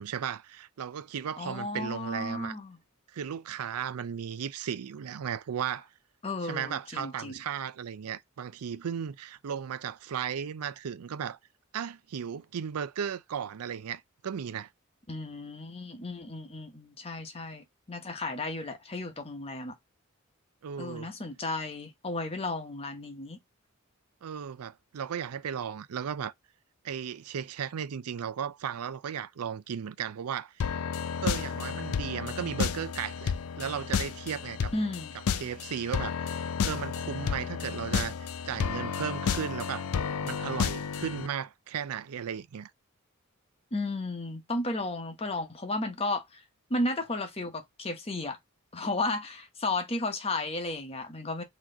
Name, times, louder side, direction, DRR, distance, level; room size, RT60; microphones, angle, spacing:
voice 1, 0.0-2.5 3.1-5.9 6.4-11.4 11.7-14.7 20.6-21.1 24.2-26.3 26.8-30.6 31.2-34.7 35.4-39.8 40.2-42.7, right 8 dB, 85° right, 0.4 m, -35 dB
voice 2, 1.4-2.8 6.2-7.4 15.1-19.7 20.8-23.4 34.7-35.1 43.7-46.4 46.7-48.4 48.7-51.4, left 2 dB, 25° left, 0.9 m, -34 dB
sound 1, 30.6-41.3, left 6 dB, 85° left, 0.4 m, -32 dB
4.1 x 3.0 x 3.8 m
head